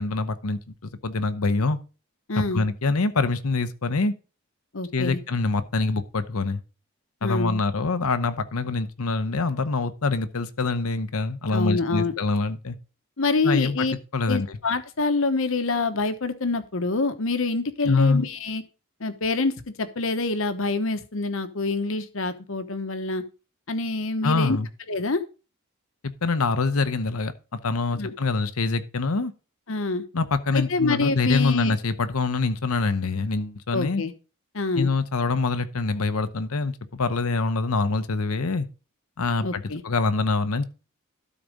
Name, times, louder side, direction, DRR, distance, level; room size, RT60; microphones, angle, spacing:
voice 1, 0.0-1.8 2.5-4.1 4.9-6.6 7.2-12.8 13.4-14.6 17.8-18.2 24.2-24.7 26.2-29.3 30.1-34.0 34.8-38.7 39.2-40.6, left 3 dB, 85° left, 0.9 m, -25 dB
voice 2, 2.3-2.6 4.7-5.2 7.2-7.6 11.5-12.1 13.2-13.9 14.3-18.6 19.0-19.5 19.8-23.2 23.7-24.6 24.9-25.2 27.9-28.1 29.7-30.0 30.5-31.8 33.7-34.1 34.5-34.9 39.4-39.8, left 3 dB, 65° left, 1.0 m, -26 dB
12.5 x 4.2 x 5.1 m
head